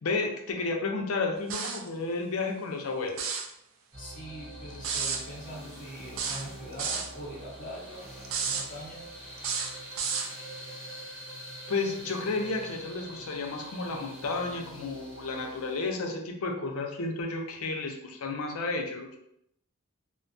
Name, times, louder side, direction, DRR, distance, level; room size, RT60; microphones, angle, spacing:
voice 1, 0.0-3.4 10.3-10.4 11.7-19.2, left 3 dB, 75° left, 2 dB, 0.5 m, -32 dB
sound 1, 1.5-1.9 3.1-3.5 4.8-5.2 6.2-7.1 8.2-8.7 9.4-10.3, right 5 dB, 65° right, 0.3 m, -31 dB
sound 2, 3.9-15.9, right 1 dB, 25° right, 0.8 m, -45 dB
voice 2, 4.0-8.1 8.4-9.1, equal, 40° left, -3 dB, 0.7 m, -43 dB
2.5 x 2.2 x 2.6 m, 0.77 s
head